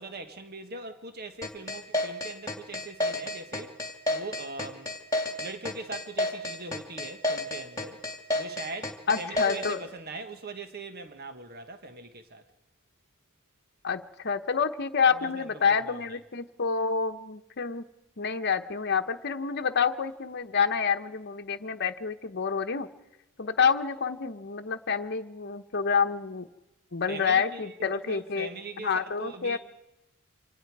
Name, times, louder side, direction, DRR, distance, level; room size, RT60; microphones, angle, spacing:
voice 1, 0.0-3.8 4.1-4.9 5.4-8.0 8.3-12.4 15.1-16.0 27.1-29.6, right 3 dB, 45° right, 1.4 m, -41 dB
sound 1, 1.4-9.8, left 1 dB, 15° left, 2.8 m, -30 dB
voice 2, 9.1-9.9 13.8-17.8 18.2-22.9 23.4-26.5 26.9-28.5 28.8-29.6, left 6 dB, 50° left, 1.0 m, -28 dB
28.0 x 25.5 x 4.8 m
head